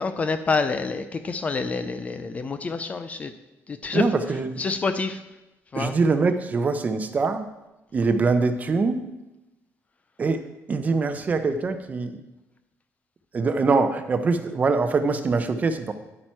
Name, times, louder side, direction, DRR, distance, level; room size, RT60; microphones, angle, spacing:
voice 1, 0.0-3.3 3.7-4.1 4.6-5.2 5.7-6.0, left 4 dB, 25° left, 10 dB, 0.5 m, -27 dB
voice 2, 3.9-4.6 5.7-7.5 7.9-9.0 10.2-10.4 10.7-12.2 13.3-15.9, right 4 dB, 30° right, 9 dB, 0.7 m, -23 dB
9.9 x 8.7 x 4.5 m, 0.99 s
cardioid pair, 165°, 5 cm